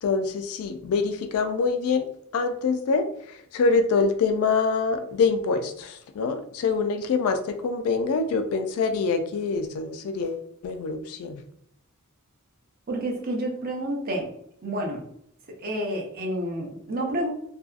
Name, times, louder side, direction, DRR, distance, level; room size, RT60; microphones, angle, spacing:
voice 1, 0.0-2.1 2.3-3.1 3.5-11.4, left 4 dB, 70° left, 8 dB, 0.3 m, -25 dB
voice 2, 12.9-14.3 14.6-15.0 15.6-17.3, right 1 dB, 40° right, 0 dB, 0.5 m, -29 dB
2.6 x 2.2 x 2.3 m, 0.71 s
head